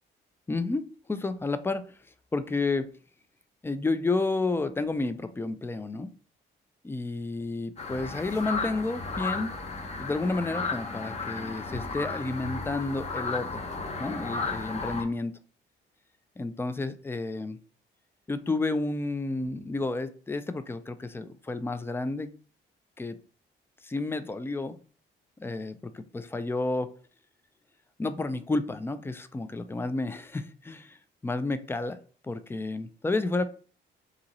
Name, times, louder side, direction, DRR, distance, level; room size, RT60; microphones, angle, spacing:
voice 1, 0.5-1.8 2.3-2.9 3.6-6.1 6.8-9.5 10.0-13.7 14.0-15.3 16.4-17.6 18.3-22.3 23.0-23.2 23.8-24.8 25.4-26.9 28.0-32.0 32.2-33.4, left 3 dB, 10° left, 11 dB, 0.4 m, -31 dB
sound 1, 7.8-15.0, left 4 dB, 35° left, 0.9 m, -34 dB
4.8 x 2.8 x 3.0 m, 0.40 s
cardioid pair, 105°, 20 cm